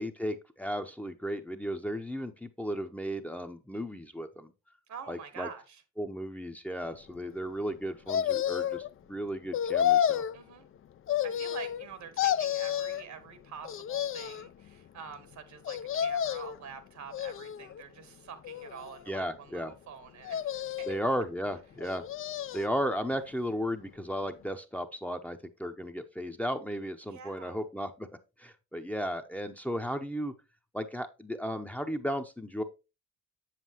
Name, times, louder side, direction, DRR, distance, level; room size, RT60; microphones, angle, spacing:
voice 1, 0.0-4.5 5.1-5.5 6.0-10.2 19.1-19.7 20.9-22.0 22.5-28.1 28.4-30.3 30.7-32.6, equal, 5° left, 6 dB, 0.7 m, -35 dB
voice 2, 4.9-5.8 10.3-10.7 11.2-20.9 27.0-27.6, right 7 dB, 70° right, 11 dB, 1.5 m, -46 dB
sound 1, 8.1-8.9 9.5-10.4 11.1-11.9 12.2-13.0 13.6-14.5 15.7-16.6 17.1-17.8 18.4-19.2 20.2-21.1 21.8-22.7 23.1-23.2, left 10 dB, 45° left, 0.4 m, -30 dB
7.5 x 7.4 x 3.0 m, 0.28 s
cardioid pair, 90°, 30 cm